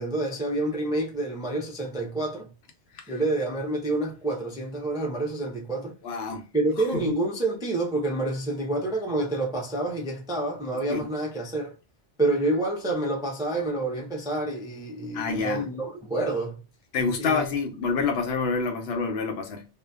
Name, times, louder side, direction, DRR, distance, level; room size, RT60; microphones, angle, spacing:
voice 1, 0.0-2.5 3.1-6.0 6.5-11.7 12.2-16.6 17.2-17.4, right 2 dB, 5° right, 0.3 m, -28 dB
voice 2, 6.0-6.4 10.9-11.0 15.1-15.7 16.9-19.7, left 4 dB, 70° left, 0.8 m, -27 dB
2.6 x 2.1 x 2.3 m
omnidirectional pair, 1.2 m